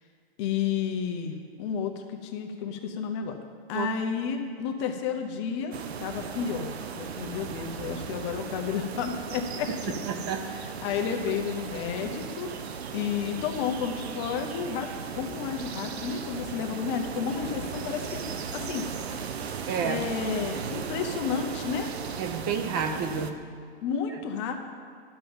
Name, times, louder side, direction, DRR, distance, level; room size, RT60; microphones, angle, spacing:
voice 1, 0.4-3.4 3.7-5.7 6.0-10.0 10.5-18.2 18.5-18.9 19.8-21.9 23.8-24.5, left 7 dB, 30° left, 4 dB, 0.6 m, -31 dB
sound 1, 5.7-23.3, right 6 dB, 80° right, 0.9 m, -37 dB
voice 2, 9.9-10.5 19.7-20.0 22.2-23.4, right 6 dB, 20° right, 7 dB, 0.4 m, -30 dB
11.5 x 5.5 x 7.0 m, 2.1 s
hypercardioid pair, 155°, 31 cm